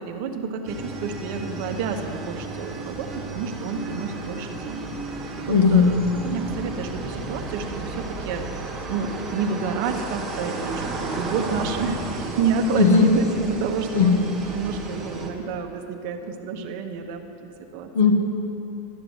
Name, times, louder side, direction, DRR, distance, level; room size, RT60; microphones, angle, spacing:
voice 1, 0.0-14.1 14.5-17.9, right 5 dB, 40° right, 5 dB, 1.0 m, -29 dB
sound 1, 0.7-15.3, right 2 dB, 5° right, 1.3 m, -33 dB
voice 2, 5.5-5.9 12.7-13.1 13.9-14.2 17.9-18.1, left 6 dB, 75° left, 4 dB, 1.3 m, -17 dB
12.0 x 7.7 x 9.5 m, 2.9 s
supercardioid pair, 180°, 0 cm